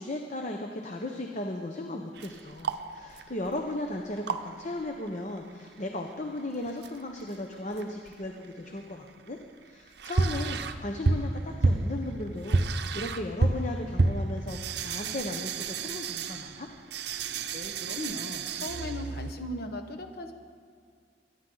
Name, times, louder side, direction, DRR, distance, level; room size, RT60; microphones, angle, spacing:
voice 1, 0.0-9.4 9.6-16.7, left 1 dB, 40° left, 3 dB, 0.8 m, -36 dB
sound 1, 2.1-5.1 5.4-5.5 5.7-5.8 6.6-7.4 7.7-8.5 8.8-19.3, right 3 dB, 65° right, 0.6 m, -31 dB
voice 2, 17.5-20.3, left 1 dB, 60° left, 5 dB, 1.3 m, -38 dB
22.5 x 10.5 x 3.9 m, 2.2 s
head